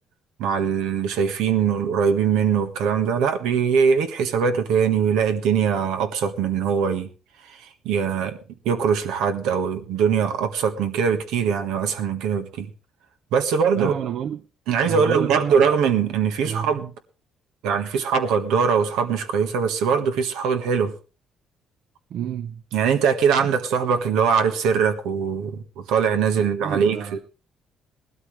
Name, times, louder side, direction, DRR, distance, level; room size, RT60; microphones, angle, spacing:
voice 1, 0.4-7.1 7.5-8.4 8.6-12.7 13.3-13.9 14.7-16.9 17.6-20.9 22.7-27.2, right 6 dB, 90° right, 1.5 m, -22 dB
voice 2, 13.8-14.5 14.9-15.6 16.4-16.7 22.1-22.6 23.4-23.5 26.4-27.2, right 9 dB, 65° right, 0.7 m, -29 dB
18.5 x 12.5 x 3.3 m
cardioid pair, 100°, 0 cm